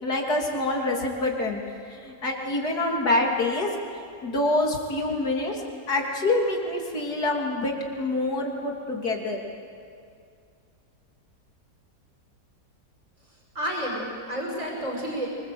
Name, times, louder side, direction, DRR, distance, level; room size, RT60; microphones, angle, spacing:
voice 1, 0.0-1.6 1.9-3.7 4.2-9.4, left 2 dB, 65° left, 0 dB, 3.5 m, -26 dB
voice 2, 13.5-15.3, equal, 50° right, -1 dB, 6.0 m, -30 dB
25.0 x 25.0 x 7.9 m, 2.3 s
omnidirectional pair, 1.8 m